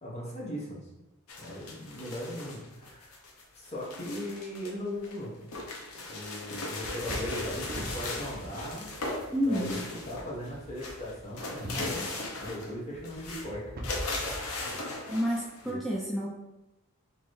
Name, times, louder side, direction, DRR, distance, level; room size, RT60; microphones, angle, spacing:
voice 1, 0.0-0.9 1.4-3.1 3.5-5.3 6.0-8.9 9.4-12.1 12.3-13.6 15.6-15.8, equal, 30° left, -5 dB, 1.1 m, -39 dB
sound 1, 1.3-4.7 5.0-10.5 10.7-12.7 13.0-13.5 13.8-15.7, left 2 dB, 80° left, 0.8 m, -38 dB
sound 2, 6.8-14.6, equal, 40° right, 0.8 m, -42 dB
voice 2, 9.3-9.7 15.1-16.3, equal, ahead, -5 dB, 0.3 m, -29 dB
4.3 x 3.1 x 3.1 m, 0.97 s
head